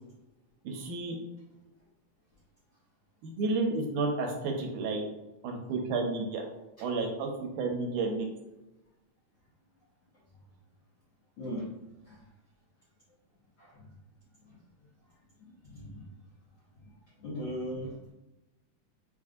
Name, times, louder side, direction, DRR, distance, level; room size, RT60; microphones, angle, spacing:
voice 1, 0.7-1.2 3.2-5.0 5.4-6.4 6.8-7.3 7.6-8.3, right 3 dB, 80° right, 1 dB, 2.1 m, -31 dB
voice 2, 13.6-13.9 14.5-14.6 15.4-16.1 17.2-18.1, equal, 65° left, -9 dB, 1.1 m, -39 dB
6.4 x 2.6 x 2.4 m, 0.96 s
omnidirectional pair, 3.6 m